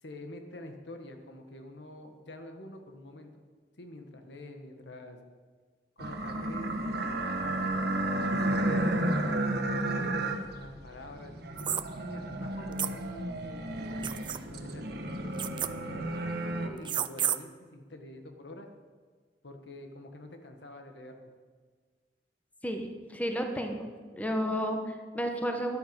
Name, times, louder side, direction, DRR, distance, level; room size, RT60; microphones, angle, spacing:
voice 1, 0.0-3.4 3.8-5.2 6.0-9.4 9.9-14.1 14.5-18.7 19.4-21.3, left 1 dB, 80° left, 5 dB, 1.5 m, -47 dB
sound 1, 6.0-16.7, right 1 dB, 65° right, 1.3 m, -32 dB
sound 2, 11.6-11.8 12.8-12.9 14.0-14.4 15.4-15.7 16.8-17.4, right 9 dB, 25° right, 0.4 m, -30 dB
voice 2, 22.6-23.9 24.1-25.8, equal, 10° left, 4 dB, 1.1 m, -32 dB
13.0 x 11.5 x 5.3 m, 1.5 s
head